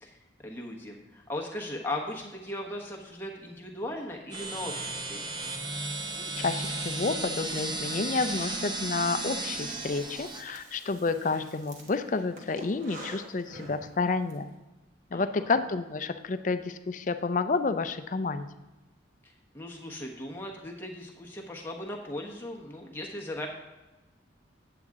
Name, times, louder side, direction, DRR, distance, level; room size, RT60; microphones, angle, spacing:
voice 1, 0.0-5.3 15.1-15.5 19.2-23.5, left 1 dB, 10° left, -1 dB, 1.1 m, -38 dB
sound 1, 4.3-10.4, right 2 dB, 25° right, 0.7 m, -34 dB
voice 2, 6.3-14.5 15.1-18.5, left 4 dB, 40° left, 10 dB, 0.4 m, -30 dB
Breathing, 9.4-14.4, right 1 dB, 40° right, 1.2 m, -48 dB
8.9 x 7.7 x 3.6 m, 1.1 s
head